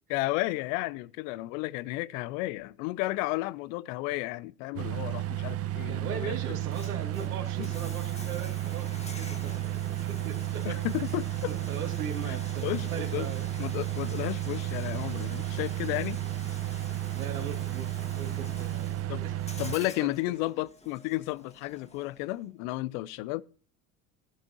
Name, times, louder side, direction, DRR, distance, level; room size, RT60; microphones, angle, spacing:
voice 1, 0.1-6.4 10.6-11.5 12.2-12.4 12.6-13.3 13.6-16.2 19.1-19.2 19.6-23.4, left 19 dB, 70° left, 0.7 m, -33 dB
sound 1, 4.8-19.8, right 14 dB, 35° right, 0.6 m, -33 dB
voice 2, 5.8-10.8 11.5-13.5 17.1-19.4 19.8-19.9, right 6 dB, 85° right, 3.1 m, -39 dB
Bathtub (filling or washing), 6.5-22.4, left 2 dB, 15° left, 2.1 m, -48 dB
15.5 x 11.5 x 2.9 m
hypercardioid pair, 75°, 43 cm